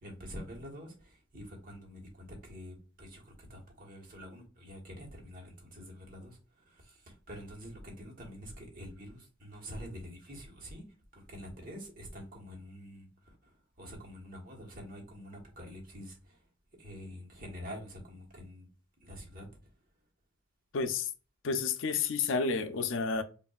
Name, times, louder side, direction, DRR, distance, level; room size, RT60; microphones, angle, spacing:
voice 1, 0.0-6.4 6.7-10.8 11.1-16.4 16.8-18.7 19.0-19.5, equal, 45° right, 1.2 m, -47 dB
voice 2, 20.7-21.1 21.4-23.2, left 5 dB, 75° left, 0.5 m, -30 dB
5.3 x 2.5 x 2.3 m
head